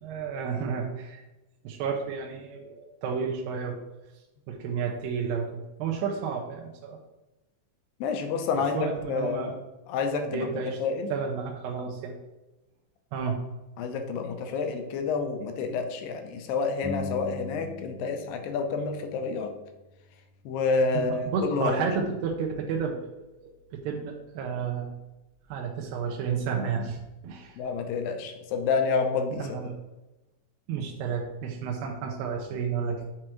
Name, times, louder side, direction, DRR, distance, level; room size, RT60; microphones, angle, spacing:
voice 1, 0.0-1.2 1.6-3.8 4.5-5.5 5.8-7.0 8.6-9.5 10.3-10.8 11.1-12.1 13.1-13.4 20.9-23.0 23.4-25.0 25.5-27.0 27.2-27.6 29.3-29.7 30.7-33.1, right 6 dB, 80° right, 1 dB, 2.3 m, -31 dB
voice 2, 8.0-9.5 9.9-11.1 13.8-19.5 20.5-21.9 27.6-29.4, left 4 dB, 80° left, 5 dB, 2.3 m, -29 dB
sound 1, 16.8-18.3 18.6-20.4, left 2 dB, 65° right, 0.9 m, -41 dB
7.5 x 4.8 x 3.0 m, 1.0 s
omnidirectional pair, 4.3 m